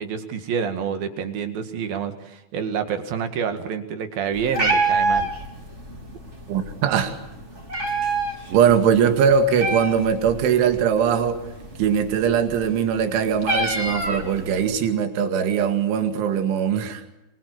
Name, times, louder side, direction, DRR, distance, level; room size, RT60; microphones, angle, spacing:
voice 1, 0.0-5.3, right 7 dB, 55° right, 8 dB, 3.2 m, -28 dB
Meow, 4.3-14.7, right 2 dB, 15° right, 3.2 m, -28 dB
voice 2, 6.5-7.2 8.5-11.4 11.8-17.0, right 7 dB, 70° right, 7 dB, 4.5 m, -21 dB
25.5 x 24.5 x 8.2 m, 0.93 s
omnidirectional pair, 5.7 m